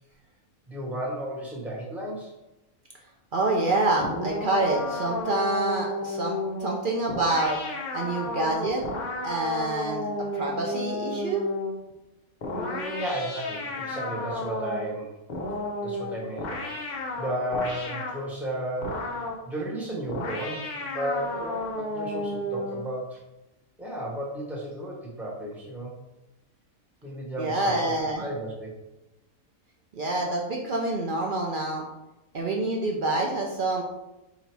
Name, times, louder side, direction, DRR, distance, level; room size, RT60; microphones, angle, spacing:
voice 1, 0.7-2.3 12.5-15.1 15.8-19.0 19.4-23.2 23.8-25.9 27.0-28.8, right 1 dB, ahead, -4 dB, 0.9 m, -33 dB
voice 2, 3.3-7.6 7.9-8.8 9.2-11.5 27.4-28.2 29.9-31.8 32.3-33.8, right 2 dB, 60° right, 0 dB, 0.5 m, -27 dB
sound 1, 4.0-11.8 12.4-14.9 15.3-18.3 18.8-19.5 20.1-22.9, left 2 dB, 55° left, 0.5 m, -33 dB
3.9 x 2.8 x 4.6 m, 0.97 s
omnidirectional pair, 1.5 m